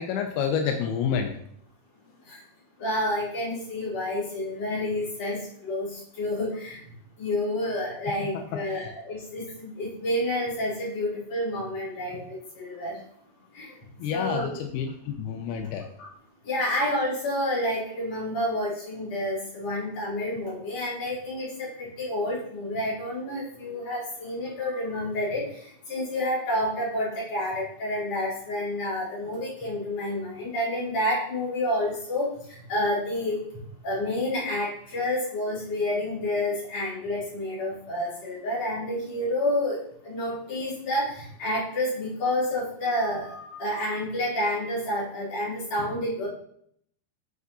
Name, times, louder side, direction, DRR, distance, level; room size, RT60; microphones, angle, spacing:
voice 1, 0.0-1.4 8.2-8.9 14.0-15.9, left 7 dB, 85° left, 4 dB, 2.2 m, -29 dB
voice 2, 2.8-6.8 7.2-13.0 13.5-13.8 14.1-14.6 16.0-16.1 16.4-46.3, left 1 dB, 40° left, -8 dB, 4.1 m, -29 dB
9.4 x 6.3 x 2.8 m, 0.66 s
omnidirectional pair, 5.2 m